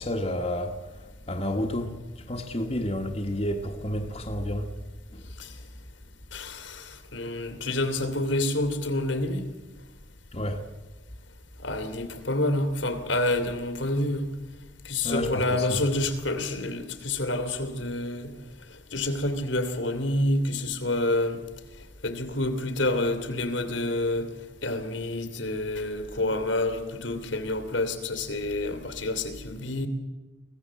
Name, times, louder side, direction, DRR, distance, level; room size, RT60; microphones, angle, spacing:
voice 1, 0.0-4.7 5.1-5.2 10.3-10.6 15.0-15.8, left 1 dB, 30° left, 1.3 m, -30 dB
voice 2, 6.3-9.4 11.6-14.3 14.8-18.3 18.9-21.4 22.0-24.3 24.6-29.9, left 1 dB, 80° left, 2.6 m, -28 dB
23.5 x 17.0 x 7.4 m
head